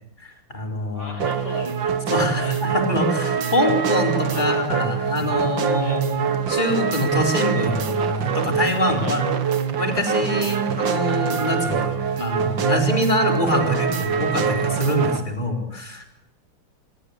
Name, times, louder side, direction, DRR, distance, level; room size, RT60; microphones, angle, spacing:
voice 1, 0.2-1.2 2.1-9.2 9.8-16.1, left 1 dB, 20° left, 4 dB, 4.5 m, -24 dB
voice 2, 0.9-1.9 2.4-2.6 4.3-4.5 5.8-6.0 9.0-9.2 10.4-10.5, left 1 dB, 45° left, 6 dB, 5.1 m, -37 dB
sound 1, 1.2-15.2, right 6 dB, 60° right, 2.2 m, -24 dB
26.0 x 22.0 x 8.3 m, 0.80 s
omnidirectional pair, 2.4 m